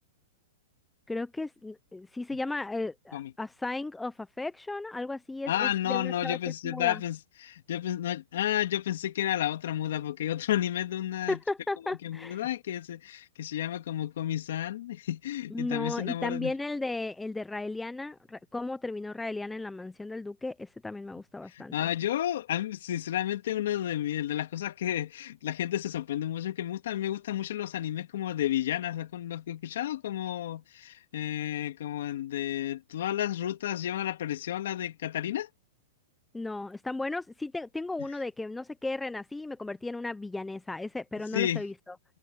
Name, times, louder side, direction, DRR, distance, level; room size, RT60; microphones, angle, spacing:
voice 1, 1.1-6.4 6.6-7.0 11.3-12.5 15.5-21.9 36.3-41.7, left 2 dB, 5° left, 0.4 m, -35 dB
voice 2, 5.5-11.4 12.0-16.5 21.5-35.5 41.3-41.6, left 12 dB, 60° left, 2.4 m, -31 dB
supercardioid pair, 175°, 0 cm